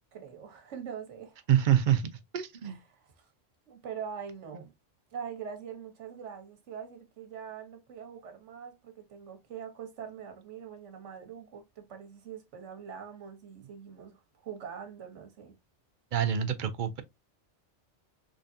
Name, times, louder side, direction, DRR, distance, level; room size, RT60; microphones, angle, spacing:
voice 1, 0.1-1.4 2.6-3.3 3.7-4.7 5.1-15.5, right 7 dB, 80° right, 1.3 m, -43 dB
voice 2, 1.5-2.8 16.1-17.0, right 10 dB, 55° right, 0.6 m, -26 dB
3.7 x 3.2 x 2.6 m
omnidirectional pair, 1.2 m